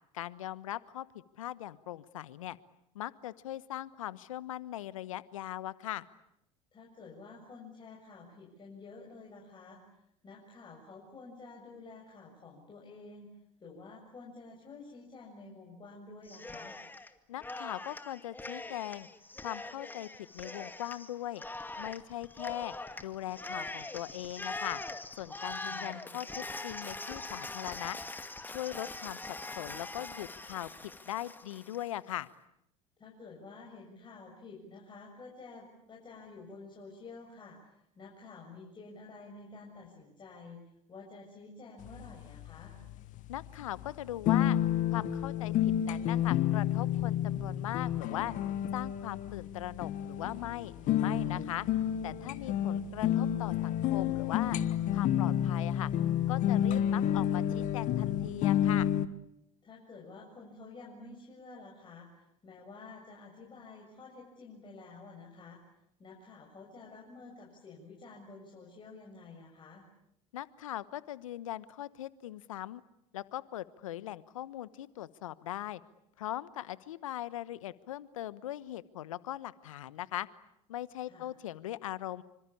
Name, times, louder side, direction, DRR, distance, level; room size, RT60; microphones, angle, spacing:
voice 1, 0.1-2.6 2.9-6.1 17.3-19.1 19.4-21.4 21.8-22.7 23.0-24.8 25.1-28.0 28.5-29.2 29.6-32.3 43.3-44.6 44.9-48.3 48.7-51.7 52.0-54.6 54.9-55.9 56.3-58.9 70.3-72.8 73.1-75.8 76.2-80.3 80.7-82.2, left 13 dB, 80° left, 17 dB, 1.1 m, -40 dB
voice 2, 6.7-16.7 25.6-26.2 33.0-40.6 40.9-42.7 52.4-52.7 59.6-65.6 66.0-69.8 81.0-81.3, left 3 dB, 30° left, -1 dB, 7.4 m, -50 dB
Cheering, 16.3-17.1 17.4-31.9, left 2 dB, 10° left, 2.2 m, -42 dB
sound 1, 41.8-59.1, left 10 dB, 50° left, 1.6 m, -30 dB
27.0 x 25.5 x 8.6 m, 0.80 s
hypercardioid pair, 80°, 17 cm